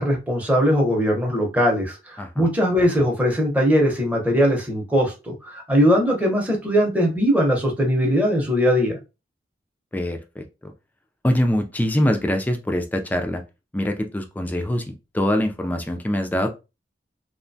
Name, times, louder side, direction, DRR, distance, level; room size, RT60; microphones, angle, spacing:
voice 1, 0.0-9.0, equal, 10° right, 0 dB, 0.7 m, -20 dB
voice 2, 2.2-2.5 9.9-10.7 11.2-13.4 13.7-16.5, left 1 dB, 10° left, 5 dB, 0.3 m, -24 dB
2.8 x 2.2 x 2.6 m, 0.27 s
head